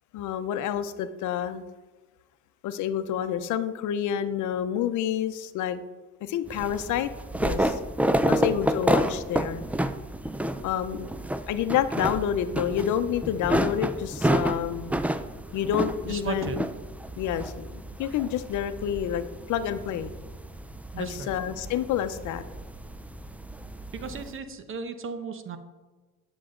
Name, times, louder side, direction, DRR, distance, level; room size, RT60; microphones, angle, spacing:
voice 1, 0.1-1.6 2.6-5.8 6.2-7.1 7.4-7.8 8.3-9.6 10.6-11.1 11.5-15.0 15.5-16.6 17.2-20.1 21.0-22.4, left 9 dB, 65° left, 12 dB, 0.7 m, -28 dB
sound 1, 6.5-24.3, right 1 dB, 5° right, 0.4 m, -30 dB
voice 2, 16.0-16.6 20.9-21.3 23.9-25.6, right 5 dB, 40° right, 10 dB, 0.9 m, -36 dB
9.9 x 7.0 x 3.8 m, 1.2 s
cardioid pair, 105°, 32 cm